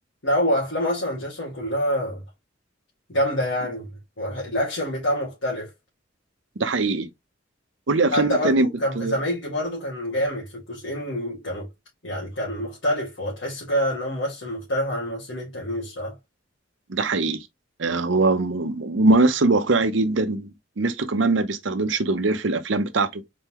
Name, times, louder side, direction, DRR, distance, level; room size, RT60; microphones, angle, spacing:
voice 1, 0.2-2.2 3.1-3.9 4.2-5.7 8.1-11.7 12.0-16.2, equal, 70° left, 2.0 m, -26 dB
voice 2, 6.6-7.1 7.9-8.7 9.0-9.2 16.9-17.4 17.8-20.5 20.8-23.2, right 3 dB, 70° right, 0.8 m, -21 dB
4.2 x 3.7 x 2.9 m
head